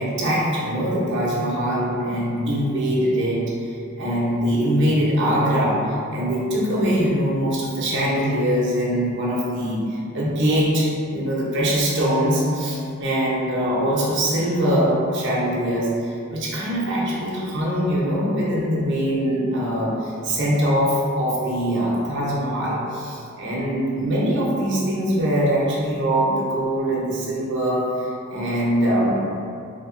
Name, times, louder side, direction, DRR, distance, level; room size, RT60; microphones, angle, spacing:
voice 1, 0.0-29.2, equal, 60° right, -5 dB, 0.8 m, -22 dB
3.7 x 2.8 x 2.6 m, 2.4 s
head